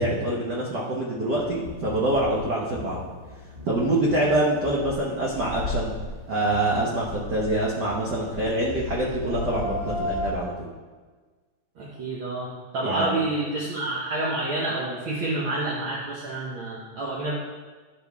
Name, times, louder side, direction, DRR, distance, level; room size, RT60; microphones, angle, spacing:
voice 1, 0.0-3.0 3.7-5.9 6.3-10.7 12.8-13.2, right 1 dB, 80° right, -5 dB, 0.9 m, -25 dB
sound 1, 1.4-10.3, left 2 dB, 25° right, 0.9 m, -35 dB
voice 2, 11.8-17.3, right 2 dB, 60° right, -5 dB, 1.4 m, -28 dB
12.5 x 5.2 x 3.6 m, 1.4 s
omnidirectional pair, 3.6 m